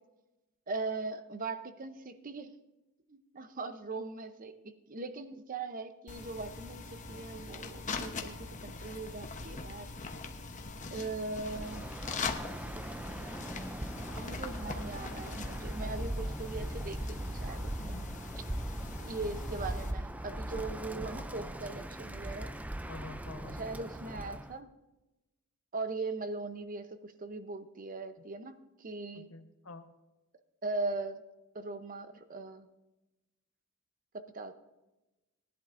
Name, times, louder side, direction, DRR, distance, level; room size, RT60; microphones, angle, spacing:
voice 1, 0.7-2.5 3.1-9.9 10.9-11.9 14.2-18.1 19.0-22.5 23.5-24.7 25.7-29.3 30.6-31.2 31.5-32.7 34.1-34.5, right 3 dB, 40° right, 10 dB, 0.7 m, -40 dB
sound 1, 6.1-19.9, left 4 dB, 35° left, 0.9 m, -42 dB
voice 2, 11.1-11.4 14.6-14.9 17.8-18.1 22.9-23.6 29.1-29.9, left 2 dB, 70° left, 7 dB, 1.0 m, -49 dB
Bird, 11.4-24.5, right 1 dB, 5° right, 0.4 m, -39 dB
19.0 x 11.0 x 2.6 m, 1.0 s
head